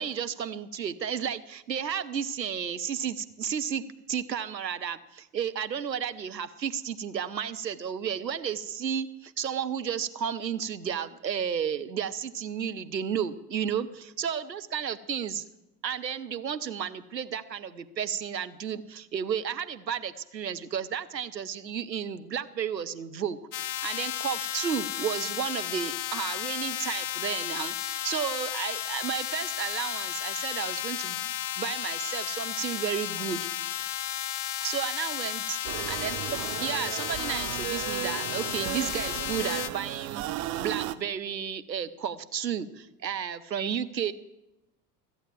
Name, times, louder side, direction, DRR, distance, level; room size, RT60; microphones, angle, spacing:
voice 1, 0.0-15.4 15.8-31.3 31.6-33.5 34.6-35.6 35.9-44.1, right 8 dB, 85° right, 12 dB, 0.7 m, -33 dB
sound 1, 23.5-39.7, left 14 dB, 50° left, 0.7 m, -33 dB
sound 2, 35.6-41.0, right 14 dB, 35° right, 0.6 m, -35 dB
14.5 x 8.0 x 7.4 m, 0.93 s
figure-of-eight pair, 70°, 49 cm